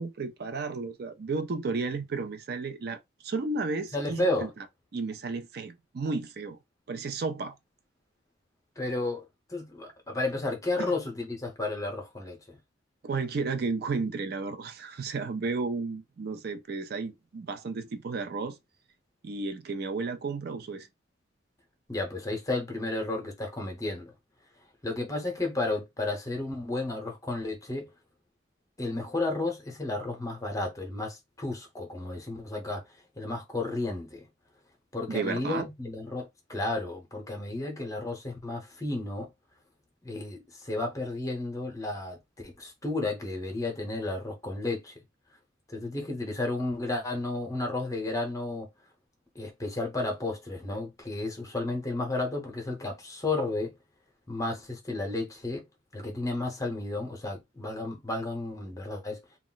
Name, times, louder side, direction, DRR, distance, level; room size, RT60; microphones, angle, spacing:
voice 1, 0.0-4.5 4.9-6.6 6.9-7.6 10.8-10.9 13.0-18.6 19.2-20.9 35.1-35.7, right 4 dB, 55° right, 0.4 m, -33 dB
voice 2, 3.9-4.5 8.8-12.6 21.9-24.1 24.8-27.9 28.8-32.8 33.2-34.3 34.9-39.3 40.0-42.2 42.4-44.9 45.7-48.7 49.3-53.7 54.3-55.7 55.9-59.2, left 2 dB, 15° left, 0.7 m, -32 dB
2.3 x 2.0 x 3.8 m
head